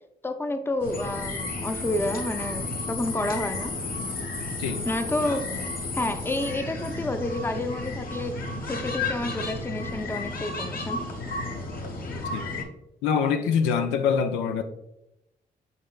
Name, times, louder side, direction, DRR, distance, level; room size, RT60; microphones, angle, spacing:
voice 1, 0.2-3.7 4.9-5.4 6.0-11.0, left 2 dB, 10° left, 7 dB, 0.5 m, -29 dB
sound 1, 0.8-12.6, left 2 dB, 50° left, 0.9 m, -33 dB
voice 2, 13.0-14.6, left 6 dB, 80° left, 7 dB, 0.4 m, -24 dB
5.2 x 4.1 x 2.4 m, 0.86 s
hypercardioid pair, 45°, 20 cm